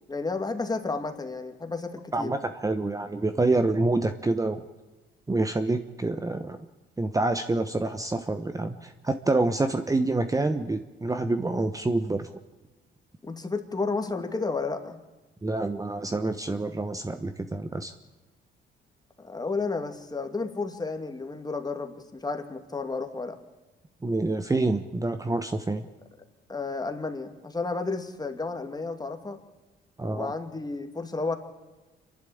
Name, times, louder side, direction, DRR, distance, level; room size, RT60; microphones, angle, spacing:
voice 1, 0.1-2.3 13.2-15.0 19.2-23.4 26.5-29.4 30.1-31.4, left 3 dB, 20° left, 5 dB, 2.4 m, -32 dB
voice 2, 2.1-4.6 5.3-6.6 7.0-12.3 15.4-17.9 24.0-25.8 30.0-30.3, right 2 dB, 15° right, 8 dB, 1.1 m, -27 dB
26.5 x 11.5 x 8.6 m, 1.2 s
cardioid pair, 90°, 20 cm